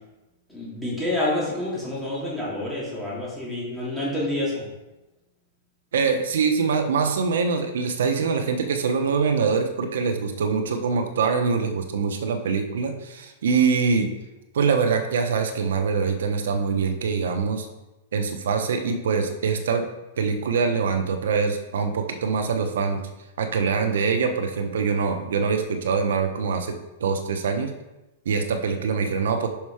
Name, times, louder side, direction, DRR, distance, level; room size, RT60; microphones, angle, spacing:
voice 1, 0.5-4.6, left 1 dB, 5° left, -8 dB, 2.7 m, -28 dB
voice 2, 5.9-14.1 14.5-17.7 18.1-19.9 20.2-23.1 23.4-27.7 28.2-29.5, right 5 dB, 85° right, 6 dB, 0.9 m, -24 dB
5.9 x 5.6 x 4.8 m, 1.0 s
supercardioid pair, 165°, 0 cm